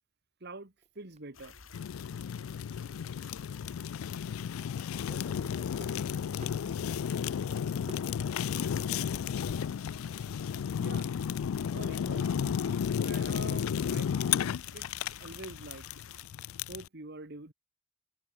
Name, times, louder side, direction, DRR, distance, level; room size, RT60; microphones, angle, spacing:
voice 1, 0.4-1.6 10.8-11.1 11.7-14.9 15.2-15.9 16.7-17.5, right 2 dB, 50° right, 1.9 m, -46 dB
sound 1, 0.8-1.4 1.7-1.8 2.2-3.1 3.4-4.7 5.1-7.4 7.6-8.2 8.5-8.6 9.3-10.2 10.5-13.2, right 1 dB, 35° right, 2.4 m, -56 dB
sound 2, 1.3-16.2, left 5 dB, 70° left, 2.0 m, -52 dB
Fire, 1.7-16.9, left 8 dB, 90° left, 0.4 m, -33 dB
voice 2, 5.0-6.1, left 1 dB, 25° left, 2.2 m, -53 dB
head